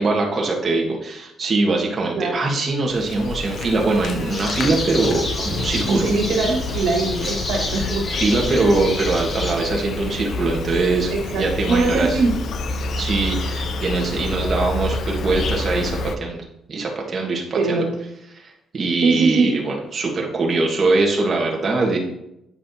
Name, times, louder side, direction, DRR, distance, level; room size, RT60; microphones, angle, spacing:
voice 1, 0.0-6.1 8.1-12.2 13.0-16.4 16.7-17.8 18.3-22.0, right 3 dB, 40° right, -1 dB, 1.4 m, -22 dB
Insect, 2.9-16.2, left 3 dB, 60° left, 0.6 m, -28 dB
sound 1, 4.3-9.5, left 1 dB, 30° left, 1.6 m, -29 dB
voice 2, 5.8-8.2 11.1-12.3 17.5-17.9 19.0-19.6, right 3 dB, 85° right, 1 dB, 1.7 m, -21 dB
8.5 x 5.4 x 2.8 m, 0.81 s
cardioid pair, 90°, 0 cm